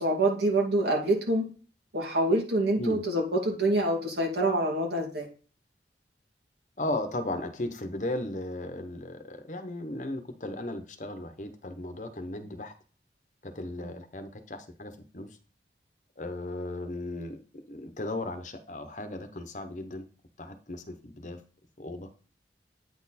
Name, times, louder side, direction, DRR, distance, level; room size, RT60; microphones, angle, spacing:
voice 1, 0.0-1.5 1.9-5.3 13.8-13.9, right 1 dB, 75° right, 0 dB, 2.4 m, -26 dB
voice 2, 6.8-12.7 13.4-15.3 16.2-20.0 20.4-21.4 21.8-22.1, left 1 dB, 45° left, 8 dB, 0.9 m, -36 dB
9.1 x 4.3 x 4.2 m, 0.37 s
head